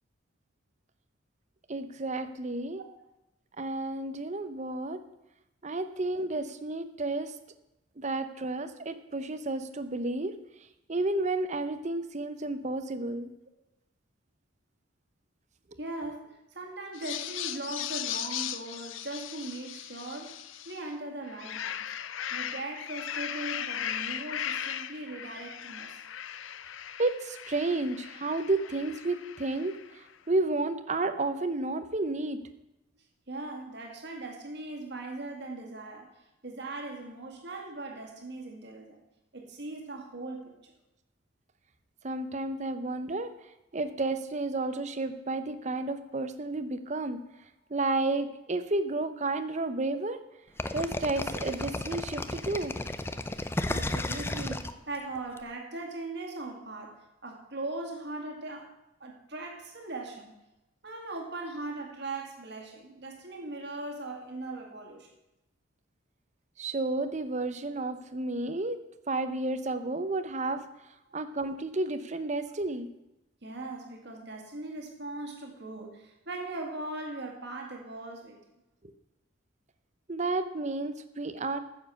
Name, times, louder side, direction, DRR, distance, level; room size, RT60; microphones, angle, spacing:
voice 1, 1.7-2.8 3.6-5.0 5.6-7.4 8.0-10.3 10.9-13.3 27.0-32.4 42.0-43.3 43.7-47.2 47.7-50.2 50.7-52.7 66.6-68.8 69.1-70.6 71.1-72.9 80.1-81.6, right 2 dB, 35° right, 11 dB, 0.7 m, -31 dB
voice 2, 15.8-21.9 22.3-26.0 33.3-39.0 39.3-40.7 53.3-58.7 59.0-60.3 60.8-65.1 73.4-78.4, right 2 dB, 55° right, 2 dB, 2.1 m, -40 dB
sound 1, 16.9-20.8 21.2-29.9, left 10 dB, 70° left, 0.5 m, -38 dB
sound 2, 50.6-55.4, left 2 dB, 10° left, 0.4 m, -33 dB
9.9 x 7.2 x 6.5 m, 0.92 s
head